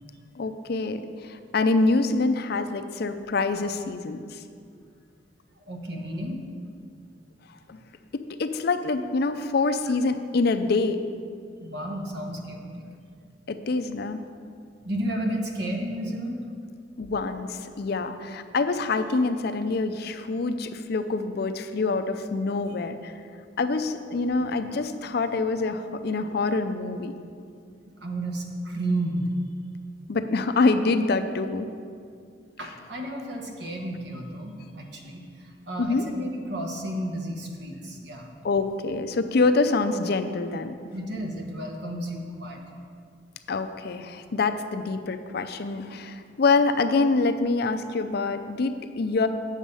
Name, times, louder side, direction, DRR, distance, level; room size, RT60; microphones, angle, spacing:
voice 1, 0.4-4.4 7.7-7.8 8.1-11.0 13.5-14.2 17.0-23.1 23.6-27.1 30.1-31.7 35.8-36.1 38.4-40.8 43.5-49.3, left 3 dB, 60° left, 8 dB, 0.5 m, -25 dB
voice 2, 5.5-6.4 11.6-12.8 14.8-16.4 28.0-29.3 32.6-38.3 40.9-42.6, right 1 dB, 65° right, 2 dB, 1.3 m, -32 dB
8.7 x 7.2 x 5.5 m, 2.2 s
head